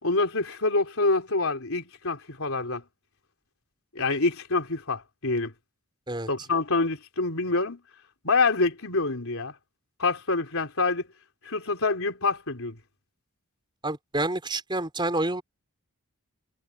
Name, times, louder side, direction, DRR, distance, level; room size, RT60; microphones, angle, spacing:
voice 1, 0.0-2.8 3.9-5.5 6.3-7.8 8.2-9.5 10.0-11.1 11.4-12.8, left 3 dB, 65° left, 4.1 m, -26 dB
voice 2, 13.8-15.4, right 2 dB, 20° right, 4.5 m, -28 dB
head